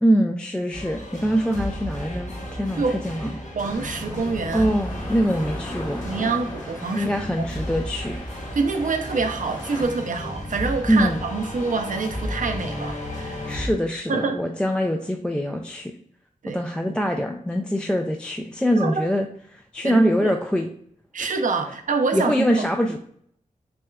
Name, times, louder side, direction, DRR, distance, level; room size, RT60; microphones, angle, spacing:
voice 1, 0.0-3.4 4.5-6.1 6.9-8.2 10.9-11.2 13.5-15.9 16.5-20.7 21.2-21.3 22.1-23.0, equal, 5° left, 3 dB, 0.3 m, -23 dB
sound 1, 0.7-13.7, left 1 dB, 55° left, 0.9 m, -33 dB
voice 2, 3.5-4.7 6.0-7.5 8.5-13.4 14.1-14.4 16.4-17.0 18.8-19.0 19.8-20.4 21.1-22.5, right 4 dB, 65° right, 6 dB, 0.5 m, -26 dB
sound 2, 3.6-9.9, left 1 dB, 30° left, 1.2 m, -39 dB
6.0 x 2.3 x 2.3 m, 0.65 s
wide cardioid pair, 75°, 14 cm